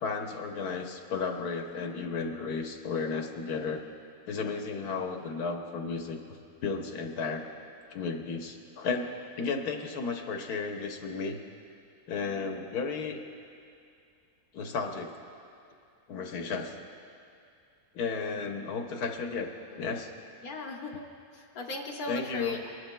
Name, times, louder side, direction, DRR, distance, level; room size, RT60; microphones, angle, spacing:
voice 1, 0.0-3.8 4.3-7.4 7.9-9.1 9.4-11.4 12.1-13.2 14.5-15.1 16.1-16.8 17.9-19.5 19.8-20.1 22.1-22.6, left 4 dB, 85° left, 4 dB, 1.4 m, -33 dB
voice 2, 20.4-21.0 21.3-22.7, left 3 dB, 70° left, 0 dB, 1.6 m, -38 dB
23.5 x 11.5 x 2.2 m, 2.5 s
omnidirectional pair, 1.6 m